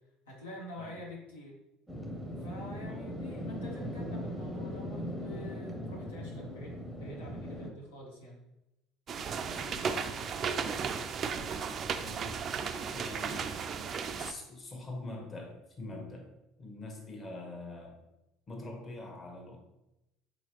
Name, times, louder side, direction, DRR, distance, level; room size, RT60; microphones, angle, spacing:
voice 1, 0.3-1.6 2.4-8.4, equal, 80° left, -3 dB, 0.8 m, -47 dB
sound 1, 1.9-7.7, equal, 5° right, 0.7 m, -39 dB
sound 2, 9.1-14.3, right 6 dB, 40° right, 0.3 m, -35 dB
voice 2, 9.5-12.5 12.9-16.3 16.6-18.0 18.5-19.6, left 2 dB, 30° left, 1 dB, 1.0 m, -45 dB
3.8 x 3.0 x 2.9 m, 0.94 s
hypercardioid pair, 65°, 0 cm